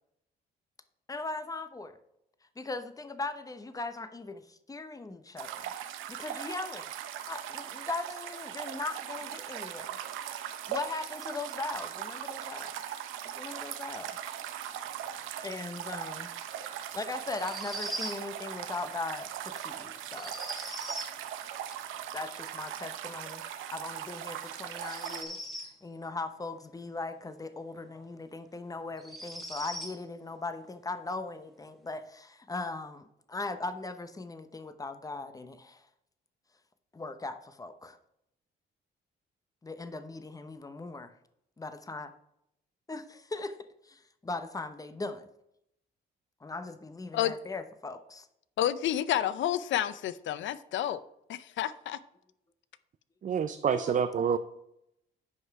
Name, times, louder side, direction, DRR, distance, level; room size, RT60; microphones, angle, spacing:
voice 1, 1.1-2.0 2.6-5.7 6.1-6.9 7.3-10.4 10.7-12.7 13.2-14.2 15.4-20.3 22.1-23.4 23.7-25.5 25.8-35.8 36.9-38.0 39.6-41.1 41.6-42.1 42.9-45.3 46.4-48.3 53.6-54.1, left 3 dB, 15° left, 0.9 m, -39 dB
sound 1, 5.4-25.2, right 10 dB, 90° right, 0.9 m, -39 dB
sound 2, 17.3-18.2 20.1-21.2 24.7-25.8 27.9-28.0 29.0-30.0, right 1 dB, ahead, 1.8 m, -40 dB
voice 2, 48.6-51.0 51.3-52.0, left 11 dB, 70° left, 0.6 m, -30 dB
voice 3, 53.2-54.4, right 7 dB, 40° right, 0.5 m, -27 dB
9.6 x 5.5 x 4.7 m
cardioid pair, 90°, 20 cm